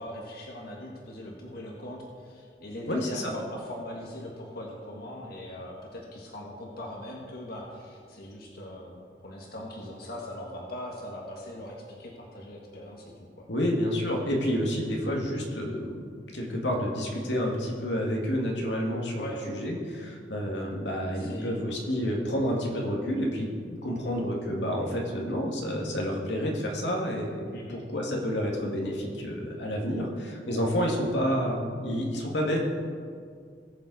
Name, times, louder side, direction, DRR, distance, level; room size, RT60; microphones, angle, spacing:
voice 1, 0.0-13.4 19.2-19.4 21.1-21.6 27.5-27.8, left 1 dB, 60° left, -1 dB, 1.5 m, -40 dB
voice 2, 2.9-3.3 13.5-16.0 16.3-32.6, equal, 90° left, -1 dB, 2.1 m, -29 dB
18.5 x 7.3 x 4.1 m, 2.1 s
head